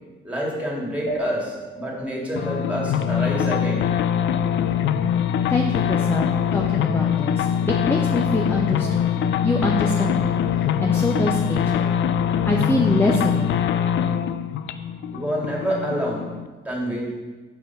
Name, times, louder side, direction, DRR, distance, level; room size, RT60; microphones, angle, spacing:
voice 1, 0.2-3.8 4.4-4.5 15.1-16.3 16.6-17.1, equal, 5° right, -3 dB, 2.2 m, -27 dB
sound 1, 1.1-4.0, right 1 dB, 50° left, 2.3 m, -34 dB
sound 2, 2.4-16.5, left 8 dB, 70° left, 0.4 m, -23 dB
voice 2, 5.5-9.1 9.4-10.4 10.8-11.9 12.4-13.8, left 1 dB, 10° left, 1 dB, 0.6 m, -25 dB
5.4 x 4.6 x 5.7 m, 1.3 s
cardioid pair, 90°, 20 cm